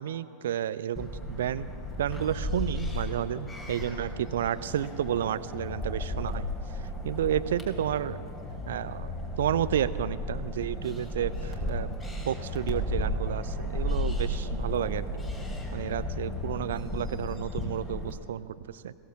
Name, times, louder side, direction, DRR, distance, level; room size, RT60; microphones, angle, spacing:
voice 1, 0.0-1.7 2.0-6.5 6.8-8.2 8.7-9.1 9.4-11.9 12.2-15.2 15.7-18.9, right 10 dB, 60° right, 16 dB, 0.7 m, -31 dB
sound 1, 1.0-18.1, left 1 dB, 20° left, 4.5 m, -34 dB
22.0 x 17.0 x 7.4 m, 2.4 s
figure-of-eight pair, 90°, 0 cm